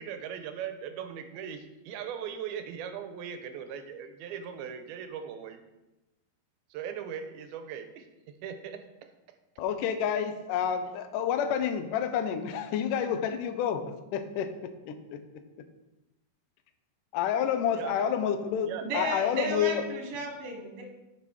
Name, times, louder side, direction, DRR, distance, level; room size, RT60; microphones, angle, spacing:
voice 1, 0.0-5.6 6.7-8.8 17.7-18.1 18.6-18.9, right 8 dB, 85° right, 8 dB, 2.5 m, -39 dB
voice 2, 9.6-15.2 17.1-19.8, left 8 dB, 80° left, 8 dB, 1.9 m, -29 dB
voice 3, 18.8-20.8, right 3 dB, 55° right, 2 dB, 2.2 m, -34 dB
10.5 x 5.9 x 4.7 m, 1.0 s
omnidirectional pair, 4.5 m